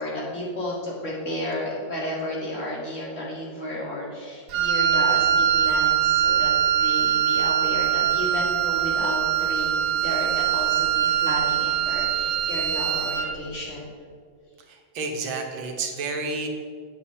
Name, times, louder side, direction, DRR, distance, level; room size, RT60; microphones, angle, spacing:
voice 1, 0.0-6.5 6.8-13.9, left 1 dB, 40° left, -5 dB, 2.5 m, -32 dB
Wind instrument woodwind instrument, 4.5-13.4, right 9 dB, 65° right, 1.2 m, -22 dB
voice 2, 14.7-16.5, right 3 dB, 85° right, 3 dB, 1.8 m, -30 dB
9.1 x 7.4 x 4.3 m, 2.1 s
omnidirectional pair, 2.1 m